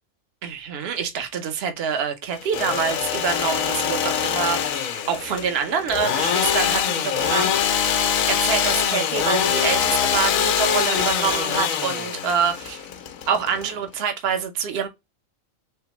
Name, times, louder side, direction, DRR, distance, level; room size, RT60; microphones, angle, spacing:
voice 1, 0.4-7.5 8.3-12.8 13.3-14.9, right 7 dB, 55° right, 0.9 m, -26 dB
Engine / Sawing, 2.3-14.0, left 8 dB, 90° left, 1.1 m, -23 dB
3.4 x 3.3 x 2.9 m
omnidirectional pair, 1.4 m